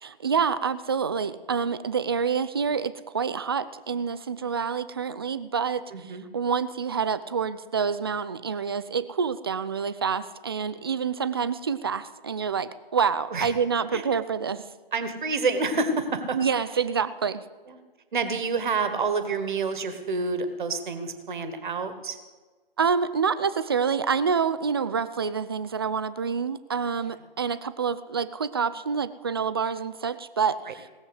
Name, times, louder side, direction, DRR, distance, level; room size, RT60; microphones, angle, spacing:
voice 1, 0.0-14.6 16.3-17.4 22.8-30.9, right 6 dB, 25° right, 14 dB, 0.4 m, -27 dB
voice 2, 5.9-6.3 13.3-13.5 13.9-14.0 14.9-16.4 17.7-17.8 18.1-22.2 30.7-30.8, right 4 dB, 55° right, 9 dB, 1.6 m, -28 dB
18.0 x 7.4 x 8.0 m, 1.4 s
figure-of-eight pair, 140°, 30 cm